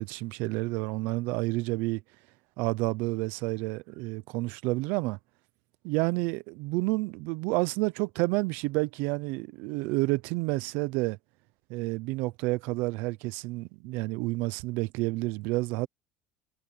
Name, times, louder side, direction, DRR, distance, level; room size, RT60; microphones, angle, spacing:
voice 1, 0.0-2.0 2.6-5.2 5.8-11.2 11.7-15.9, right 22 dB, 60° right, 0.6 m, -30 dB
cardioid pair, 175°, 4 cm